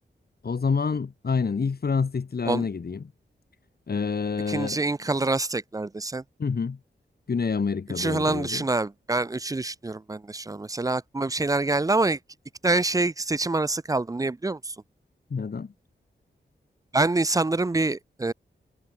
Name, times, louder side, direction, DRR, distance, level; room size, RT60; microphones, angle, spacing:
voice 1, 0.4-3.0 3.9-4.8 6.4-6.8 7.3-8.6 15.3-15.7, left 5 dB, 60° left, 3.3 m, -27 dB
voice 2, 4.5-6.2 8.0-12.2 12.6-14.7 16.9-18.3, right 2 dB, 20° right, 0.5 m, -26 dB
wide cardioid pair, 125°, 19 cm